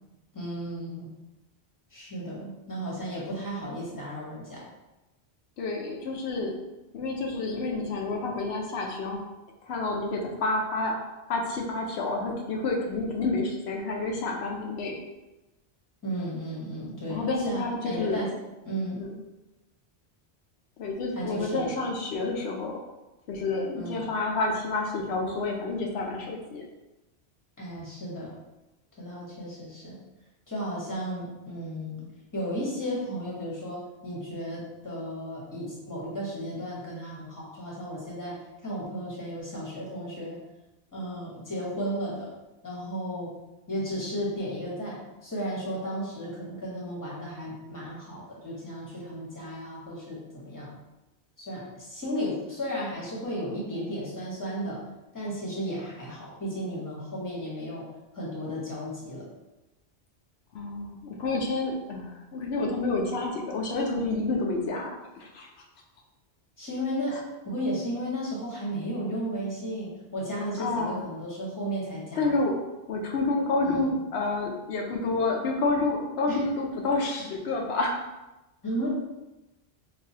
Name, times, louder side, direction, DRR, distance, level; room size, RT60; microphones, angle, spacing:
voice 1, 0.3-1.1 1.9-4.6 16.0-18.3 18.6-19.0 21.1-21.7 23.7-24.1 27.6-28.3 29.0-29.9 30.5-32.1 32.3-38.4 38.6-40.4 40.9-42.3 42.6-43.3 43.7-50.7 51.4-54.8 55.1-57.8 58.1-59.2 66.6-67.1 67.4-72.3 73.6-73.9 76.3-76.4 78.6-78.9, equal, 20° left, -5 dB, 1.1 m, -34 dB
voice 2, 5.6-6.6 6.9-9.2 9.6-15.0 17.1-18.3 19.0-19.2 20.8-22.8 23.3-26.6 60.5-65.5 67.1-67.2 70.6-71.1 72.2-72.6 72.9-77.9, left 3 dB, 80° left, 0 dB, 0.9 m, -29 dB
4.8 x 2.6 x 2.8 m, 1.0 s
omnidirectional pair, 1.1 m